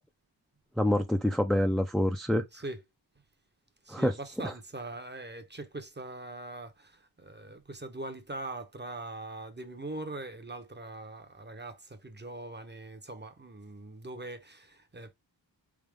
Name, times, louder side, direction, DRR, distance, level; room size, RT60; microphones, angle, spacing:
voice 1, 0.8-2.4 3.9-4.5, left 1 dB, ahead, 0.5 m, -27 dB
voice 2, 3.9-15.1, right 2 dB, 25° right, 0.9 m, -42 dB
4.1 x 3.7 x 3.5 m
wide cardioid pair, 90°, 44 cm